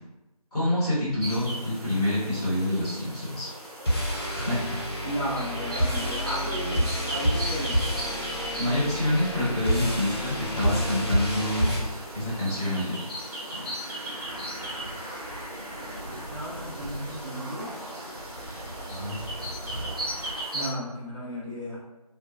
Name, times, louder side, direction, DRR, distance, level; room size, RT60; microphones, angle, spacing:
voice 1, 0.5-3.5 4.2-4.8 8.5-11.7 12.1-13.0 18.9-19.2, left 1 dB, 10° left, -12 dB, 1.2 m, -27 dB
sound 1, 1.2-20.7, right 1 dB, 75° right, 1.1 m, -38 dB
sound 2, 3.8-11.8, equal, 40° left, 0.6 m, -28 dB
voice 2, 5.0-7.8 16.0-17.7 20.5-21.8, equal, 50° right, -8 dB, 1.0 m, -34 dB
sound 3, 6.9-20.4, right 1 dB, 35° right, 0.5 m, -42 dB
2.4 x 2.2 x 2.7 m, 0.98 s
figure-of-eight pair, 170°, 20 cm